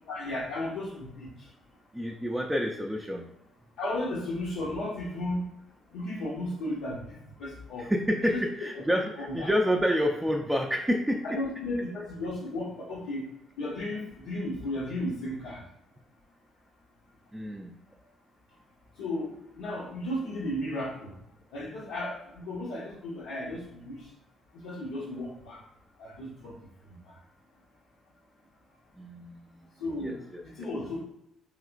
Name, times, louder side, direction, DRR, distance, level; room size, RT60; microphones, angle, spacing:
voice 1, 0.1-1.3 3.8-5.5 5.9-7.9 8.2-8.4 9.2-9.5 11.2-13.3 13.6-15.6 19.0-21.1 21.5-24.0 24.6-25.6 26.0-26.5 27.1-27.2 29.8-30.2 30.6-31.0, left 1 dB, 70° left, -6 dB, 0.6 m, -34 dB
voice 2, 1.9-3.2 7.8-11.2 17.3-17.7 29.0-29.4 30.0-30.7, equal, 10° right, 0 dB, 0.4 m, -28 dB
3.1 x 2.8 x 2.4 m, 0.80 s
figure-of-eight pair, 45°, 0 cm